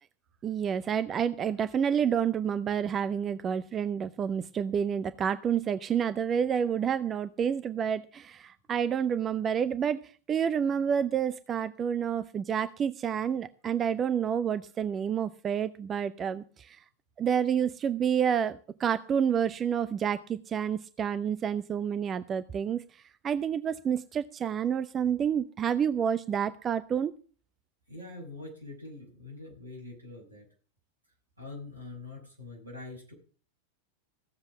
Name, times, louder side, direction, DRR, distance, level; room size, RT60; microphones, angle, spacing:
voice 1, 0.4-16.8 17.2-27.1, right 8 dB, 25° right, 13 dB, 0.6 m, -29 dB
voice 2, 27.9-30.4 31.4-33.1, left 2 dB, 80° right, 2 dB, 5.9 m, -44 dB
15.5 x 7.5 x 7.1 m, 0.39 s
figure-of-eight pair, 90°, 0 cm